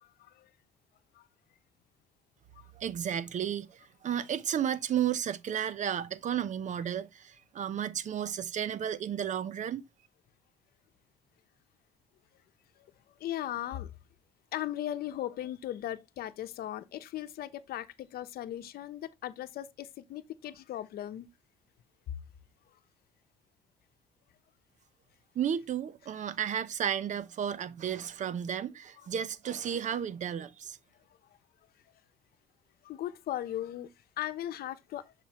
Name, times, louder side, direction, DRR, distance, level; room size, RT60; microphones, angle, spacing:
voice 1, 0.0-0.5 1.1-1.3 2.5-2.7 12.8-13.9 14.5-21.3 32.8-33.9 34.2-35.1, left 12 dB, 65° left, 0.9 m, -38 dB
voice 2, 2.8-9.9 25.3-30.8, right 9 dB, 45° right, 0.8 m, -33 dB
7.2 x 6.0 x 3.0 m
cardioid pair, 110°, 17 cm